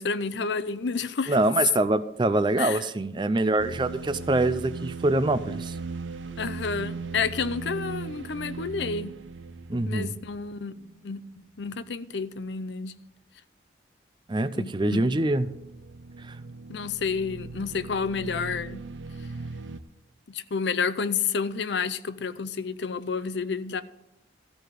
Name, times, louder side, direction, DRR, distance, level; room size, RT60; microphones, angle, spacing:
voice 1, 0.0-1.4 2.6-2.8 6.4-9.2 9.9-11.2 11.6-12.9 14.5-15.0 16.7-18.8 20.3-23.8, left 5 dB, 70° left, 0.6 m, -30 dB
voice 2, 1.3-5.8 9.7-10.2 14.3-15.5 16.3-16.4, right 2 dB, 25° right, 0.4 m, -24 dB
sound 1, 3.6-11.0 11.6-11.8 14.8-19.8, right 4 dB, 90° right, 0.7 m, -38 dB
14.0 x 4.9 x 9.2 m
head